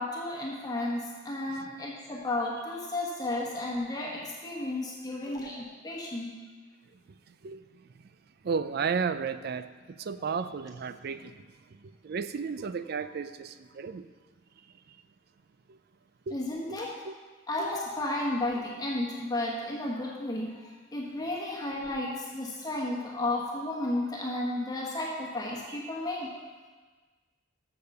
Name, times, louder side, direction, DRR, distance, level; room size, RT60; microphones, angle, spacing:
voice 1, 0.0-6.4 16.3-16.9 17.5-26.3, left 1 dB, 20° left, 1.2 m, -33 dB
voice 2, 7.3-8.1 8.4-11.5 11.7-14.1 14.9-15.0 15.7-15.8 16.3-16.4 16.7-17.1 25.7-25.8, right 5 dB, 50° right, 0.4 m, -34 dB
6.8 x 6.8 x 6.6 m
head